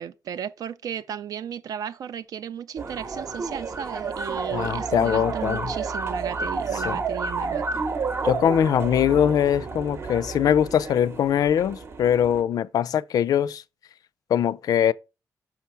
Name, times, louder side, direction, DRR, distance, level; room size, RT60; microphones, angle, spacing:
voice 1, 0.0-7.8, right 8 dB, 80° right, 0.4 m, -35 dB
sound 1, 2.8-12.4, right 4 dB, 45° right, 0.9 m, -31 dB
voice 2, 4.5-5.7 6.7-7.0 8.2-13.6 14.3-14.9, left 9 dB, 90° left, 0.4 m, -22 dB
6.0 x 5.7 x 4.5 m
wide cardioid pair, 170°, 6 cm